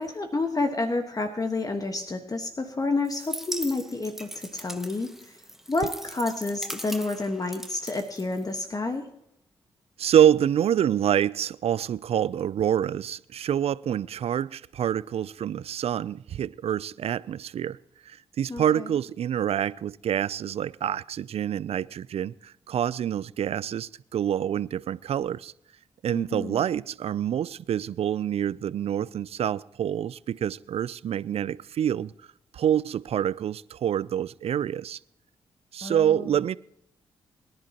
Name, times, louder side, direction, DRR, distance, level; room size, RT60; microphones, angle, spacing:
voice 1, 0.0-5.4 5.7-9.1 18.5-18.9 26.1-26.6 35.8-36.3, left 3 dB, 35° left, 1.4 m, -29 dB
sound 1, 3.0-8.8, equal, 5° right, 1.2 m, -40 dB
voice 2, 10.0-17.8 18.1-25.5 26.0-32.1 32.5-35.0 35.7-36.6, right 10 dB, 65° right, 0.4 m, -26 dB
22.0 x 10.5 x 2.9 m
supercardioid pair, 50°, 11 cm